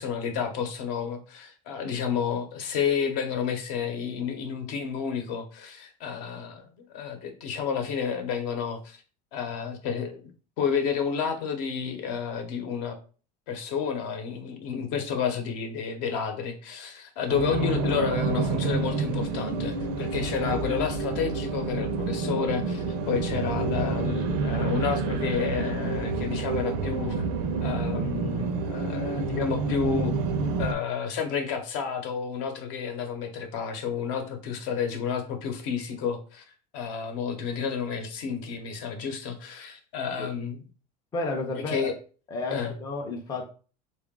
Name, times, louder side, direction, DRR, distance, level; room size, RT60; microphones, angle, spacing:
voice 1, 0.0-6.7 6.9-9.0 9.3-10.2 10.6-13.0 13.5-27.2 27.6-30.1 30.6-36.4 36.7-40.6 41.5-41.9 42.5-42.7, left 7 dB, 55° left, 6 dB, 0.8 m, -30 dB
sound 1, 17.3-30.7, right 4 dB, 80° right, 0.6 m, -28 dB
voice 2, 41.1-41.9 42.3-43.5, left 2 dB, 15° left, 1 dB, 0.5 m, -32 dB
3.7 x 2.4 x 3.6 m, 0.38 s
supercardioid pair, 155°, 21 cm